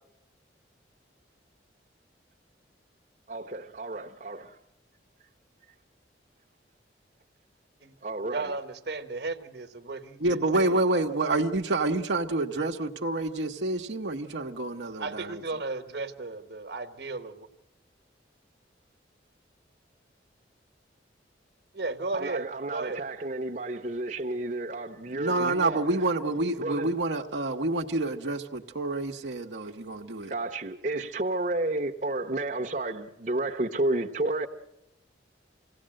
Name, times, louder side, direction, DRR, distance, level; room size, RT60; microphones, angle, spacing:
voice 1, 3.3-4.6 8.0-8.5 22.1-25.9 26.6-26.9 30.3-34.5, right 2 dB, 40° right, 0.9 m, -31 dB
voice 2, 8.3-10.8 15.0-17.5 21.7-23.0, right 3 dB, 60° right, 1.3 m, -35 dB
voice 3, 10.2-15.4 25.1-30.3, right 2 dB, 75° right, 1.0 m, -28 dB
26.0 x 17.0 x 7.6 m
head